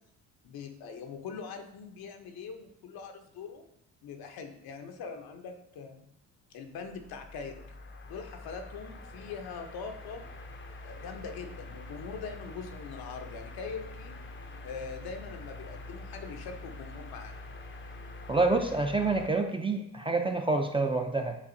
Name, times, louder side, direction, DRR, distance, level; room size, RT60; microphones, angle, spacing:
voice 1, 0.4-3.6 4.0-6.1 6.5-7.6 8.0-10.2 10.8-14.2 14.6-17.4, left 5 dB, 70° left, 5 dB, 0.8 m, -42 dB
sound 1, 6.6-19.3, left 2 dB, 30° left, 0.6 m, -45 dB
voice 2, 18.3-21.4, right 3 dB, 15° right, 4 dB, 0.5 m, -27 dB
7.2 x 2.4 x 2.6 m, 0.72 s
supercardioid pair, 65°, 38 cm